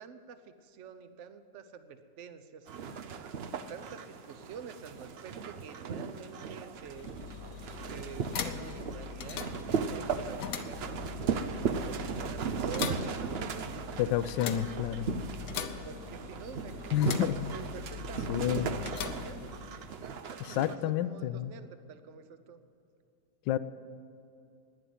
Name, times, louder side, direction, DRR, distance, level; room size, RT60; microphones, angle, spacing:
voice 1, 0.0-2.9 3.5-7.1 7.9-9.6 9.8-15.0 15.8-19.4 20.0-22.6, right 7 dB, 55° right, 10 dB, 0.8 m, -48 dB
sound 1, 2.7-20.8, right 6 dB, 85° right, 0.5 m, -37 dB
sound 2, 6.7-20.0, left 8 dB, 60° left, 1.0 m, -41 dB
voice 2, 14.0-15.1 16.9-17.5 18.3-18.7 20.6-21.5 23.5-23.6, left 11 dB, 80° left, 15 dB, 1.2 m, -29 dB
11.0 x 9.8 x 9.2 m, 2.6 s
omnidirectional pair, 1.9 m